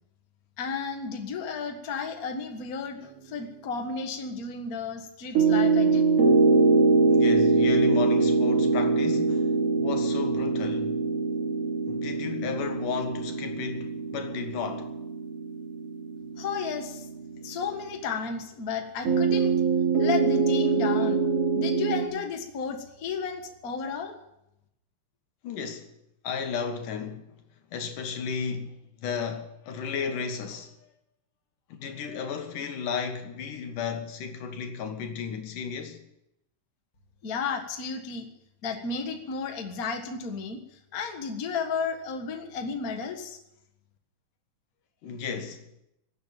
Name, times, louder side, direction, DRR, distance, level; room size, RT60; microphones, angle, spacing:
voice 1, 0.6-3.0 3.3-6.0 16.4-17.1 17.4-19.5 20.0-21.2 21.5-24.1 37.2-38.3 38.6-40.6 40.9-43.4, left 5 dB, 35° left, 1.5 m, -33 dB
sound 1, 5.3-17.8 19.0-22.1, right 4 dB, 50° right, 4.2 m, -24 dB
voice 2, 7.0-9.5 9.8-11.0 11.9-14.9 17.4-17.5 25.4-25.9 26.2-27.3 27.7-30.7 31.7-36.0 45.0-45.6, left 6 dB, 75° left, 3.1 m, -34 dB
19.0 x 8.3 x 9.1 m
omnidirectional pair, 3.7 m